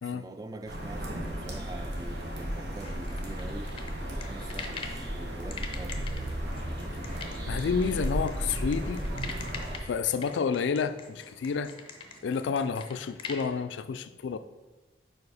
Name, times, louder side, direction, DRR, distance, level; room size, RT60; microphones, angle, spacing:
voice 1, 0.0-3.8 4.2-6.3, right 2 dB, 20° right, 0.3 m, -44 dB
sound 1, 0.7-9.8, equal, 70° right, 1.0 m, -34 dB
sound 2, 2.8-5.0 5.5-13.5, left 5 dB, 30° left, 0.6 m, -42 dB
sound 3, 6.7-13.4, right 1 dB, 40° right, 1.1 m, -54 dB
voice 2, 7.5-9.1 9.3-9.4 9.8-11.7 12.2-14.4, left 5 dB, 90° left, 0.3 m, -30 dB
4.8 x 4.6 x 4.8 m
head